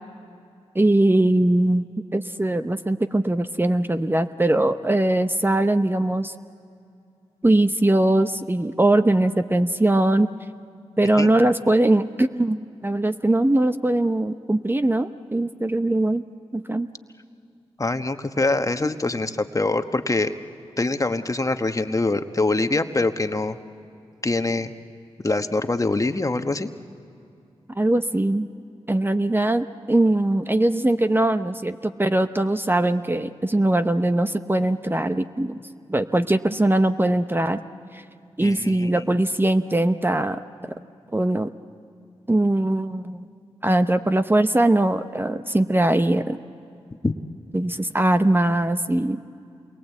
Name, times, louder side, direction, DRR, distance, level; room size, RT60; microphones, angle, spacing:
voice 1, 0.7-6.3 7.4-10.3 11.0-16.2 16.5-16.9 18.8-18.9 27.8-28.5 28.9-35.6 35.9-37.6 37.9-38.0 38.4-40.7 41.1-41.5 42.3-43.3 43.6-46.4 47.5-49.2, right 1 dB, 20° right, 9 dB, 0.8 m, -21 dB
voice 2, 17.8-20.3 20.8-23.6 24.2-24.7 25.2-26.7 38.4-38.9 47.0-47.1, left 2 dB, 30° left, 8 dB, 1.2 m, -24 dB
27.5 x 22.5 x 8.2 m, 2.5 s
cardioid pair, 45°, 11 cm